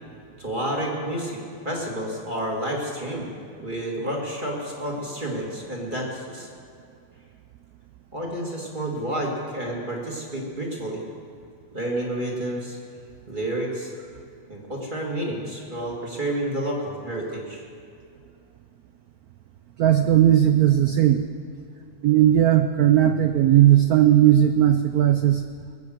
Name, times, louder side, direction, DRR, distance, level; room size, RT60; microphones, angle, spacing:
voice 1, 0.4-1.4 1.6-3.3 3.6-6.5 8.1-11.0 11.7-12.8 13.3-13.9 14.5-17.6, right 1 dB, 25° right, -2 dB, 2.2 m, -30 dB
voice 2, 19.8-21.3 22.0-25.4, right 11 dB, 85° right, 8 dB, 0.8 m, -17 dB
19.5 x 7.9 x 7.8 m, 2.4 s
omnidirectional pair, 2.3 m